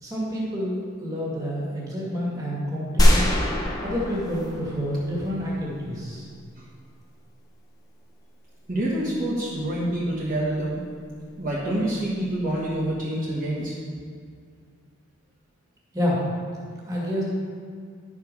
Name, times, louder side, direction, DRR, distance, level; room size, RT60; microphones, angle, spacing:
voice 1, 0.0-3.3 3.8-6.3 15.9-16.2 16.9-17.2, equal, 15° right, -6 dB, 2.1 m, -28 dB
sound 1, 3.0-5.3, equal, 20° left, 0.9 m, -22 dB
voice 2, 8.7-10.8 11.4-13.7, right 1 dB, 40° right, -7 dB, 1.4 m, -27 dB
11.5 x 4.9 x 5.3 m, 2.1 s
head